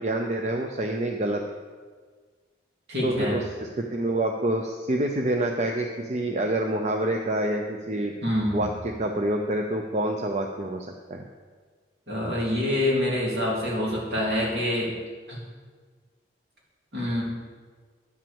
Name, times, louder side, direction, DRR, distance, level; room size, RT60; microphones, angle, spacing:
voice 1, 0.0-1.4 3.0-8.1 8.5-11.3, right 1 dB, 35° right, 3 dB, 0.6 m, -27 dB
voice 2, 2.9-3.3 8.2-8.6 12.1-14.9 15.3-15.4 16.9-17.2, left 1 dB, 65° right, -5 dB, 3.1 m, -26 dB
9.7 x 6.0 x 7.0 m, 1.5 s
head